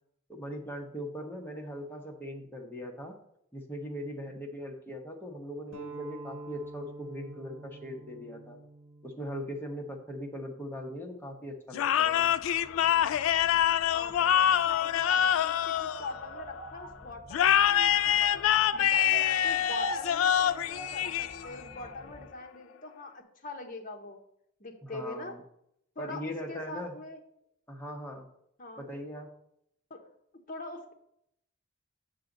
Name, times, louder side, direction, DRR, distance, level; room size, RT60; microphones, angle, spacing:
voice 1, 0.3-3.2 3.5-8.6 9.0-12.3 24.8-25.4 26.0-26.9 27.7-28.3 28.8-29.3, equal, 10° left, 0 dB, 1.0 m, -40 dB
sound 1, 5.7-10.9, right 1 dB, 75° right, 0.9 m, -47 dB
sound 2, 11.7-16.6 17.3-21.7, left 10 dB, 80° left, 0.3 m, -25 dB
sound 3, 11.8-22.3, right 2 dB, 35° right, 1.0 m, -45 dB
voice 2, 13.9-18.4 18.7-24.2 24.6-25.4 25.9-27.2 28.6-28.9 29.9-30.0 30.5-30.9, left 3 dB, 40° left, 3 dB, 1.0 m, -43 dB
7.5 x 6.3 x 3.9 m, 0.75 s
head